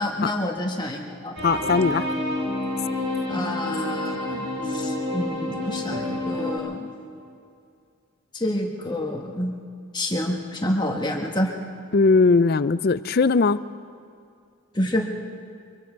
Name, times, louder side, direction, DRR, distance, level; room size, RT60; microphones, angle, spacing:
voice 1, 0.0-1.3 3.3-6.9 8.3-9.5 9.9-11.5 14.7-15.0, left 1 dB, 20° left, 1 dB, 1.4 m, -28 dB
voice 2, 1.4-2.0 11.9-13.6, left 4 dB, 45° left, 15 dB, 0.4 m, -19 dB
sound 1, 1.4-6.6, left 1 dB, 60° right, 5.3 m, -28 dB
24.5 x 24.0 x 4.6 m, 2.3 s
head